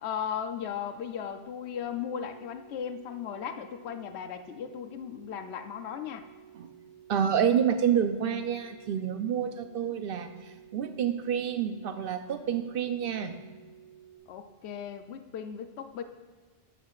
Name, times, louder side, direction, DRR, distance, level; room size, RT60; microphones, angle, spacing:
voice 1, 0.0-6.2 14.3-16.0, left 8 dB, 75° left, 8 dB, 0.9 m, -36 dB
sound 1, 1.6-14.2, right 10 dB, 55° left, 2.9 m, -54 dB
voice 2, 7.1-13.4, right 8 dB, 60° right, 8 dB, 0.8 m, -28 dB
12.5 x 7.5 x 2.4 m, 1.4 s
omnidirectional pair, 1.2 m